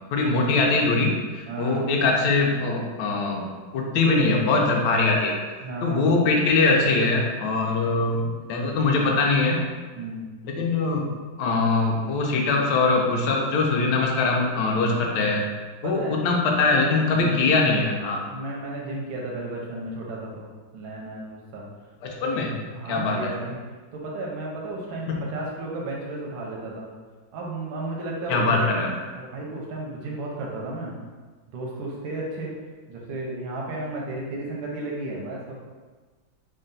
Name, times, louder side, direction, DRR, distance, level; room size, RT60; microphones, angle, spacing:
voice 1, 0.1-5.4 5.8-9.6 10.4-11.1 11.4-15.4 15.8-18.2 22.0-22.5 22.9-23.3 25.1-25.2 28.3-29.0, left 3 dB, 70° left, 0 dB, 1.1 m, -22 dB
voice 2, 1.5-1.9 5.6-6.1 10.0-10.3 14.8-15.2 15.8-16.2 17.1-17.5 18.3-20.5 20.7-21.6 22.2-22.5 22.7-23.6 23.9-26.9 27.3-30.9 31.5-32.5 32.9-35.5, right 2 dB, 85° right, -2 dB, 1.4 m, -33 dB
3.8 x 2.2 x 3.9 m, 1.4 s
omnidirectional pair, 2.1 m